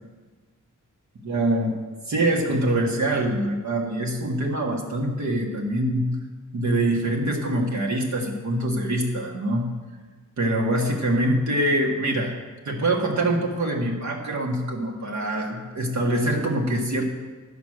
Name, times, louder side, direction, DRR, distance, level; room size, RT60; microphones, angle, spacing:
voice 1, 1.2-1.8 2.1-6.1 6.5-9.7 10.4-12.3 12.6-17.1, right 1 dB, 60° right, -1 dB, 1.5 m, -24 dB
11.0 x 5.2 x 6.4 m, 1.3 s
wide cardioid pair, 125°, 31 cm